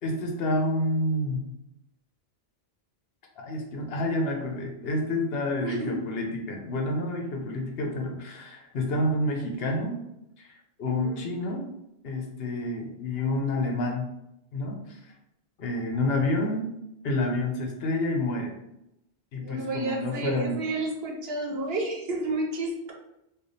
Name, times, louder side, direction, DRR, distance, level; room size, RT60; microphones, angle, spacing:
voice 1, 0.0-1.4 3.4-10.0 10.4-11.7 12.0-14.1 14.5-15.0 15.6-16.7 17.0-18.5 19.3-20.5, left 1 dB, 70° left, 2 dB, 0.9 m, -29 dB
voice 2, 5.6-6.0 10.9-11.2 16.2-16.3 19.4-22.9, right 2 dB, 70° right, 1 dB, 1.0 m, -31 dB
3.3 x 2.4 x 3.9 m, 0.85 s
omnidirectional pair, 1.1 m